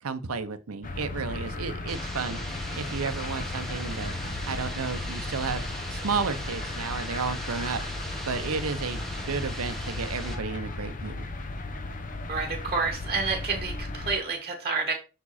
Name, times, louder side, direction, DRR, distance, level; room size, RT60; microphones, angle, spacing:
voice 1, 0.0-2.4 2.7-4.2 4.5-5.6 5.9-7.8 8.3-11.3, right 5 dB, 70° right, 0.7 m, -32 dB
sound 1, 0.8-14.1, left 2 dB, 40° left, 0.7 m, -35 dB
sound 2, 1.9-10.4, right 1 dB, ahead, 1.1 m, -39 dB
voice 2, 12.3-14.9, right 4 dB, 25° right, 1.2 m, -29 dB
6.0 x 4.7 x 4.2 m
head